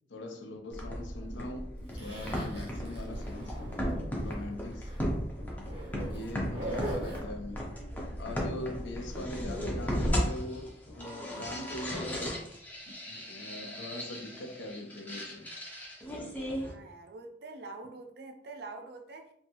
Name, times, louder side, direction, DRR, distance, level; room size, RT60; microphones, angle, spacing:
voice 1, 0.1-3.6 4.2-4.9 6.1-7.7 8.2-12.5 12.9-15.5, left 1 dB, 80° left, 0.4 m, -42 dB
sound 1, 0.7-16.7, equal, 10° left, 0.4 m, -36 dB
Zipper (clothing), 1.9-4.4 4.7-5.0 5.6-7.2, right 1 dB, 30° right, 0.7 m, -41 dB
Hammer, 2.2-4.5 5.1-5.9 6.4-7.3 8.3-8.4 8.8-8.9 9.3-10.0 10.5-11.2 11.4-12.1, left 1 dB, 40° left, 0.8 m, -48 dB
voice 2, 16.6-19.3, right 3 dB, 60° right, 0.4 m, -45 dB
2.6 x 2.3 x 2.8 m
head